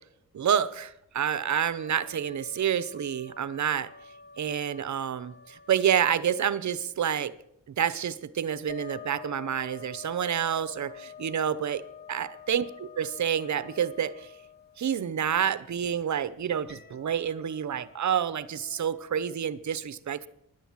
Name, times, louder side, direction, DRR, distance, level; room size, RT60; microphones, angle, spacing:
voice 1, 0.3-3.9 4.4-7.4 7.7-11.8 12.1-14.3 14.8-20.3, right 8 dB, 60° right, 0.9 m, -28 dB
sound 1, 1.4-6.7 8.7-15.0 16.7-19.4, left 7 dB, 30° left, 1.0 m, -48 dB
17.0 x 11.0 x 7.5 m
wide cardioid pair, 150°, 32 cm